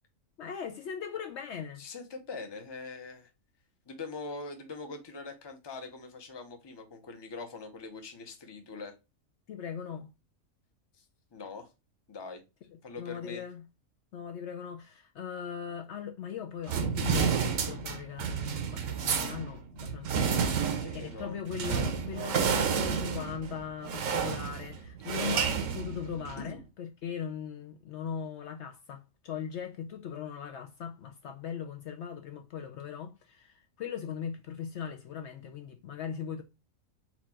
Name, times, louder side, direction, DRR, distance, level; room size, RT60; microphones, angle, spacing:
voice 1, 0.4-1.9 9.5-10.1 12.7-13.6 14.1-20.7 20.9-36.4, left 7 dB, 65° left, 0.8 m, -39 dB
voice 2, 1.8-3.3 3.9-8.9 11.0-11.1 11.3-11.7 12.1-12.4 12.8-13.4 20.6-21.4 26.4-26.6, left 3 dB, 25° left, 0.7 m, -42 dB
sound 1, 16.7-26.5, right 6 dB, 75° right, 1.1 m, -30 dB
4.3 x 2.5 x 4.2 m
omnidirectional pair, 1.4 m